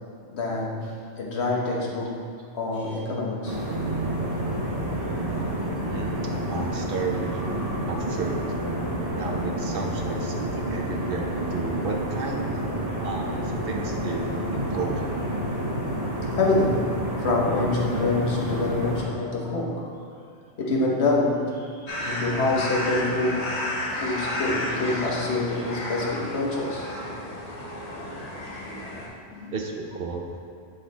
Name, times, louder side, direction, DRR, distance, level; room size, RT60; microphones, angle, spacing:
voice 1, 0.3-2.2 2.5-3.6 5.0-5.6 13.3-13.4 16.4-20.0 20.6-23.6 24.0-27.3 27.9-28.2 28.6-29.0 29.3-29.5, left 2 dB, 70° left, -3 dB, 1.3 m, -27 dB
sound 1, 3.4-19.0, right 1 dB, 35° right, 1.3 m, -29 dB
voice 2, 5.8-6.2 6.5-7.4 7.9-8.6 9.1-12.6 13.0-15.2 29.5-30.3, right 4 dB, 60° right, 1 dB, 0.7 m, -33 dB
sound 2, 21.9-29.1, left 1 dB, 35° left, 1.0 m, -32 dB
7.8 x 3.9 x 4.0 m, 2.4 s
omnidirectional pair, 1.2 m